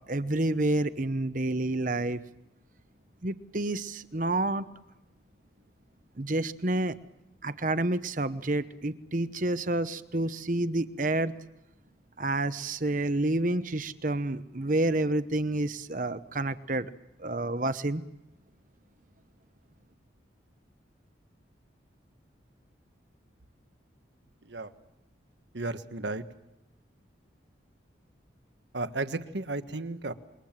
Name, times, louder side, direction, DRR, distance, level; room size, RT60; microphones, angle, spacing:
voice 1, 0.1-2.2 3.2-4.6 6.2-7.0 7.4-11.3 12.2-16.9 17.2-18.0, right 2 dB, 45° right, 12 dB, 1.0 m, -29 dB
voice 2, 25.5-26.2 28.7-30.1, right 2 dB, 70° right, 10 dB, 1.4 m, -33 dB
27.0 x 23.0 x 7.5 m, 0.92 s
head